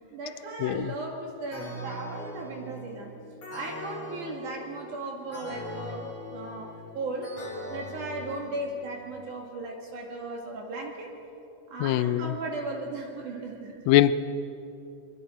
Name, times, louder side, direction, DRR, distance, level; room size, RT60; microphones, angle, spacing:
voice 1, 0.1-3.1 3.5-7.3 7.7-11.1 11.7-13.9, right 2 dB, 75° right, 0 dB, 3.8 m, -36 dB
sound 1, 1.5-9.2, left 1 dB, 55° left, 4.7 m, -41 dB
voice 2, 11.8-12.3 13.9-14.2, left 13 dB, 80° left, 14 dB, 1.6 m, -21 dB
26.5 x 23.0 x 4.6 m, 2.8 s
omnidirectional pair, 3.7 m